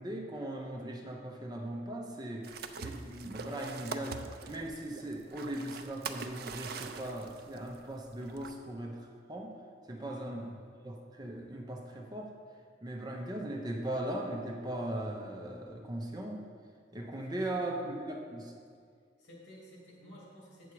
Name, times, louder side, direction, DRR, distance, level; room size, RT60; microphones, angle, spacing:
voice 1, 0.0-2.4 2.8-4.2 4.5-9.0 9.3-9.5 9.9-10.4 10.8-12.3 12.8-16.4 16.9-18.5, right 1 dB, 20° right, 0 dB, 0.8 m, -38 dB
sound 1, 2.4-8.5, right 4 dB, 55° right, 0.4 m, -43 dB
voice 2, 10.0-10.7 17.1-18.0 19.2-20.7, equal, 80° left, -4 dB, 2.6 m, -53 dB
8.3 x 7.0 x 4.7 m, 2.1 s
head